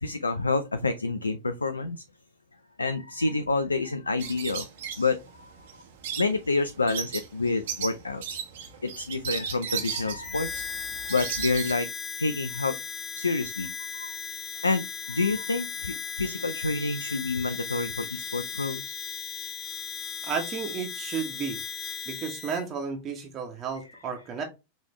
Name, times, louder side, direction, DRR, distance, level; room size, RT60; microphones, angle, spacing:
voice 1, 0.0-2.0 2.8-4.7 5.0-5.7 6.2-8.4 8.8-11.9 12.2-12.8 13.2-14.2 14.6-18.9, left 3 dB, 80° left, 10 dB, 0.4 m, -28 dB
sound 1, 4.2-11.7, right 8 dB, 55° right, 1.1 m, -36 dB
Harmonica, 10.2-22.6, left 7 dB, 25° left, 0.7 m, -37 dB
voice 2, 20.2-21.6 22.1-24.4, right 6 dB, 30° right, 3 dB, 1.2 m, -33 dB
5.2 x 3.2 x 3.1 m, 0.25 s
figure-of-eight pair, 90°, 0 cm